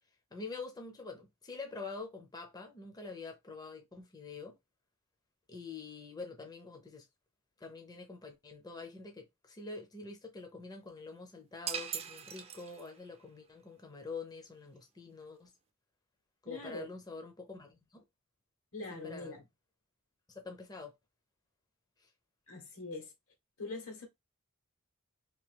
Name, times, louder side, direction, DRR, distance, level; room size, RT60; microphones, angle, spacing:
voice 1, 0.3-4.6 5.5-7.1 7.6-15.5 16.4-18.0 19.0-19.4 20.3-20.9 22.0-22.1, left 4 dB, 20° left, 0.6 m, -46 dB
sound 1, 11.7-13.1, right 8 dB, 30° right, 0.4 m, -40 dB
voice 2, 16.4-16.9 18.7-19.4 22.5-23.1 23.6-24.1, left 2 dB, 80° left, 1.5 m, -42 dB
2.9 x 2.7 x 3.3 m
head